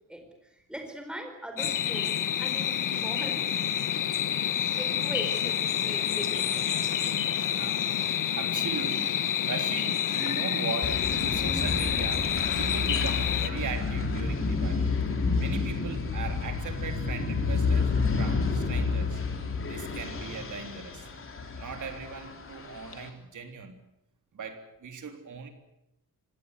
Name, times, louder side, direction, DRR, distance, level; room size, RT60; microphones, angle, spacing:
voice 1, 0.5-3.4 4.8-6.8, right 1 dB, 5° right, 4 dB, 4.6 m, -40 dB
sound 1, 1.6-13.5, left 9 dB, 65° left, 1.3 m, -28 dB
voice 2, 7.4-9.2 9.5-12.3 12.6-14.9 15.4-19.2 19.7-21.1 21.5-23.8 24.3-25.5, right 5 dB, 60° right, 6 dB, 3.5 m, -39 dB
sound 2, 10.8-23.1, left 4 dB, 40° left, 3.3 m, -30 dB
25.5 x 18.0 x 8.2 m, 0.87 s
wide cardioid pair, 180°, 34 cm